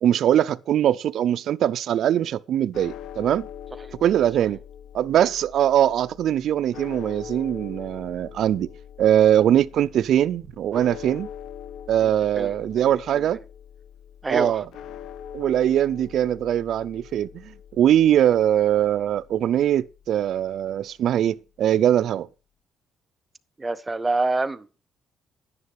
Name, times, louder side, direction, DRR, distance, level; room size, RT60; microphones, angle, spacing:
voice 1, 0.0-3.5 4.0-4.6 4.9-8.7 9.0-11.3 11.9-13.4 14.3-14.6 15.3-17.4 17.8-22.3, right 10 dB, 65° right, 0.5 m, -21 dB
sound 1, 2.7-21.0, left 9 dB, 75° left, 0.7 m, -43 dB
voice 2, 12.4-12.9 14.2-14.6 23.6-24.9, right 3 dB, 15° right, 0.7 m, -27 dB
11.5 x 9.7 x 4.8 m
cardioid pair, 140°, 0 cm